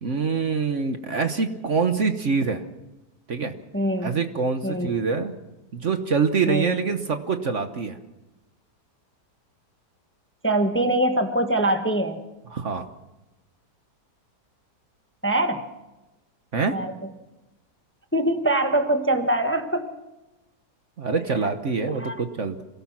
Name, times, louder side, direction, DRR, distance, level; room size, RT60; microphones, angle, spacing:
voice 1, 0.0-2.6 3.3-3.5 4.0-5.3 5.7-8.0 12.5-12.8 16.5-16.8 21.0-22.6, right 5 dB, 50° right, 7 dB, 1.4 m, -25 dB
voice 2, 3.7-4.2 4.6-4.9 6.5-6.7 10.4-12.2 15.2-15.7 16.7-16.9 18.1-19.9 22.0-22.1, right 1 dB, 10° left, 6 dB, 1.2 m, -23 dB
26.5 x 17.5 x 6.1 m, 1.0 s
omnidirectional pair, 1.8 m